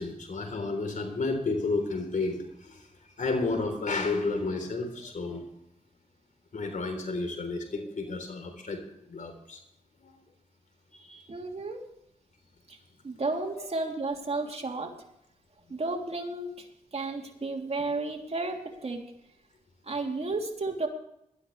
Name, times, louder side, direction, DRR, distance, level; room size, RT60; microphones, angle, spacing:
voice 1, 0.0-2.9 3.2-5.4 6.5-8.8 9.1-9.6 10.0-10.1 10.9-11.2 13.5-13.7, left 3 dB, 65° left, 6 dB, 3.6 m, -31 dB
voice 2, 11.3-11.9 12.7-12.8 13.0-14.9 15.7-19.0 19.8-20.9, right 3 dB, 45° right, 2 dB, 3.0 m, -33 dB
20.0 x 13.0 x 3.3 m, 0.79 s
cardioid pair, 55°, 14 cm